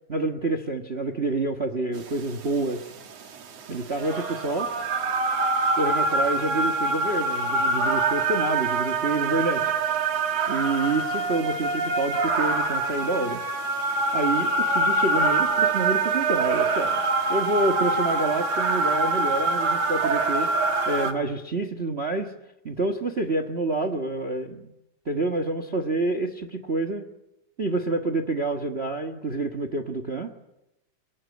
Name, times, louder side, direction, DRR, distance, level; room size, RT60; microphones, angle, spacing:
voice 1, 0.1-2.9 3.7-4.7 5.8-9.7 10.5-13.4 14.1-17.0 17.3-22.3 22.6-24.7 25.0-27.1 27.6-30.5, right 2 dB, 75° right, 9 dB, 0.5 m, -28 dB
sound 1, 2.1-21.1, right 3 dB, 55° right, 2.9 m, -25 dB
28.0 x 22.0 x 9.6 m, 0.90 s
omnidirectional pair, 3.8 m